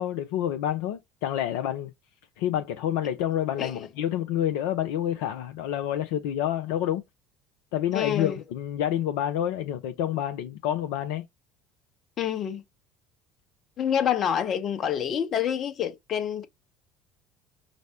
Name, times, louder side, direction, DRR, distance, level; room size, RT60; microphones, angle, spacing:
voice 1, 0.0-1.9 2.4-7.0 7.7-11.2, left 11 dB, 65° left, 0.4 m, -28 dB
voice 2, 7.9-8.4 12.2-12.6 13.8-16.4, left 9 dB, 45° left, 0.8 m, -27 dB
5.1 x 2.0 x 2.8 m
figure-of-eight pair, 60°, 0 cm